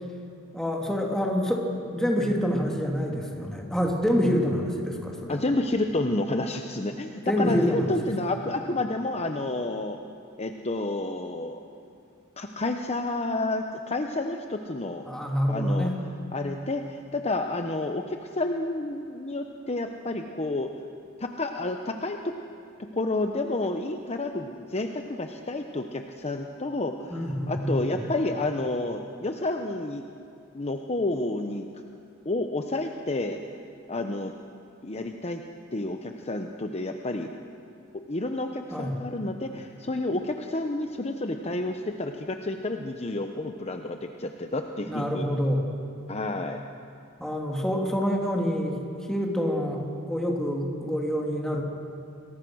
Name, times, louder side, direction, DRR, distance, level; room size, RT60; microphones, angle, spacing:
voice 1, 0.5-5.4 7.3-7.9 15.1-16.0 27.1-28.0 38.7-39.0 44.9-45.6 47.2-48.8 49.1-51.6, equal, 5° left, 0 dB, 2.8 m, -27 dB
voice 2, 5.3-10.0 10.4-11.6 12.4-15.0 15.5-15.9 16.3-20.7 21.2-22.3 22.9-30.0 30.5-31.7 32.2-33.4 33.9-34.3 34.8-35.4 35.7-37.3 37.9-45.3 46.1-46.6, left 2 dB, 30° left, 5 dB, 0.9 m, -30 dB
29.5 x 22.5 x 6.4 m, 2.6 s
head